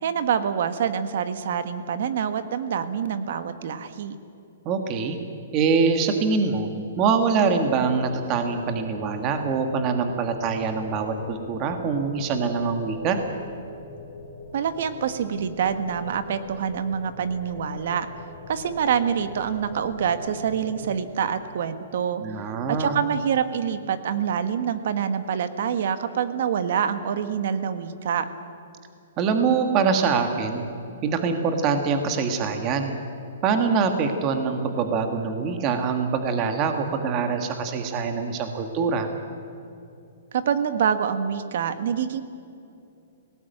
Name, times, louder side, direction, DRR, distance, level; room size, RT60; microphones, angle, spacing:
voice 1, 0.0-4.1 14.5-18.1 18.5-22.2 22.7-28.3 40.3-42.2, right 8 dB, 55° right, 11 dB, 1.4 m, -26 dB
voice 2, 4.6-5.2 5.5-6.7 7.0-13.2 22.2-23.0 29.2-30.7 31.0-33.0 33.4-39.1, right 5 dB, 25° right, 6 dB, 1.6 m, -24 dB
sound 1, 7.7-21.0, left 3 dB, 50° left, 5.3 m, -42 dB
19.0 x 18.0 x 9.2 m, 2.6 s
hypercardioid pair, 165°, 0 cm